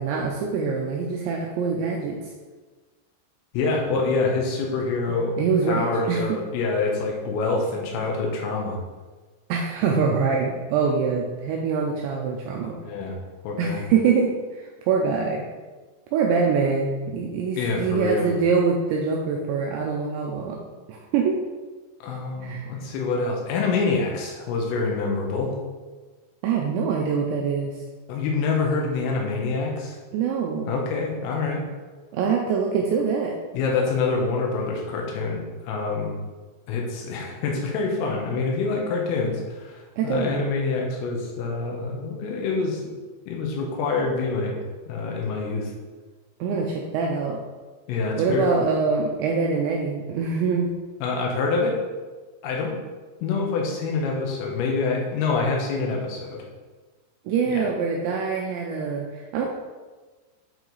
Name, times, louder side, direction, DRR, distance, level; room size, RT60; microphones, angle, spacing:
voice 1, 0.0-2.2 5.4-6.2 9.5-12.8 13.6-15.4 16.1-20.6 20.9-21.4 22.4-22.7 26.4-27.7 30.1-30.8 32.1-33.4 40.0-40.4 46.4-47.4 48.2-50.7 57.3-59.5, right 5 dB, 85° right, -1 dB, 2.6 m, -24 dB
voice 2, 3.5-5.4 5.7-8.8 12.8-13.2 13.4-13.8 17.6-18.3 22.0-25.6 28.1-30.0 30.7-31.7 33.5-36.2 36.7-42.8 43.3-44.6 44.9-45.7 47.9-48.5 51.0-51.8 52.4-52.8 53.2-56.4 57.5-57.7, left 4 dB, 90° left, 0 dB, 3.7 m, -26 dB
8.6 x 4.6 x 4.0 m, 1.3 s
omnidirectional pair, 5.8 m